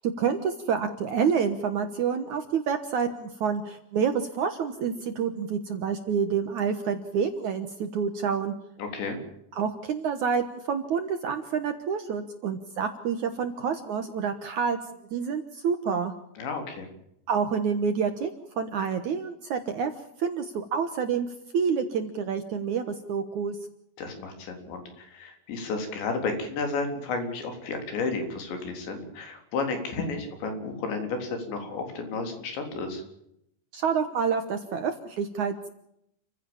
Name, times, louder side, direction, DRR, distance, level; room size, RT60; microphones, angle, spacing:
voice 1, 0.0-8.5 9.5-14.8 15.1-16.1 17.3-18.3 18.6-19.9 20.2-21.3 21.5-23.6 33.7-35.7, right 6 dB, 65° right, 9 dB, 2.0 m, -28 dB
voice 2, 8.8-9.2 16.4-16.9 24.0-33.0, left 3 dB, 90° left, 5 dB, 6.1 m, -32 dB
29.0 x 15.5 x 7.2 m, 0.77 s
omnidirectional pair, 5.0 m